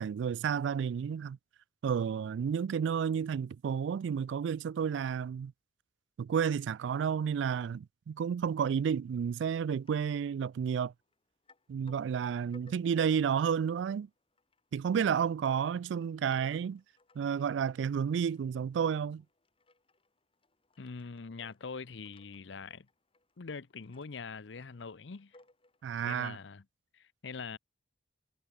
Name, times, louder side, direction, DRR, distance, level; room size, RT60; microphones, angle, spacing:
voice 1, 0.0-1.4 1.8-5.5 6.2-10.9 11.7-14.1 14.7-16.8 17.2-19.2 25.8-26.4, right 7 dB, 75° right, 0.3 m, -31 dB
sound 1, 9.3-10.1 10.4-11.2 11.4-25.9, left 2 dB, 30° left, 3.5 m, -64 dB
voice 2, 20.8-22.9 23.4-25.4 26.0-26.6 26.9-27.6, left 5 dB, 75° left, 0.7 m, -43 dB
head